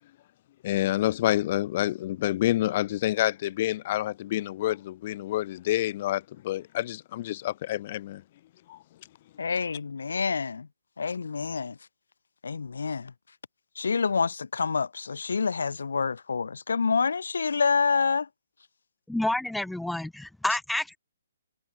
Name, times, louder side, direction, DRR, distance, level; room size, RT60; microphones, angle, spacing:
voice 1, 0.6-8.2 8.7-8.8 9.5-9.6, left 14 dB, 35° left, 1.0 m, -28 dB
voice 2, 9.4-10.7 11.0-11.7 12.4-13.1 13.8-18.3, left 5 dB, 85° left, 1.0 m, -27 dB
voice 3, 19.1-21.0, left 1 dB, ahead, 1.7 m, -29 dB
hypercardioid pair, 165°, 0 cm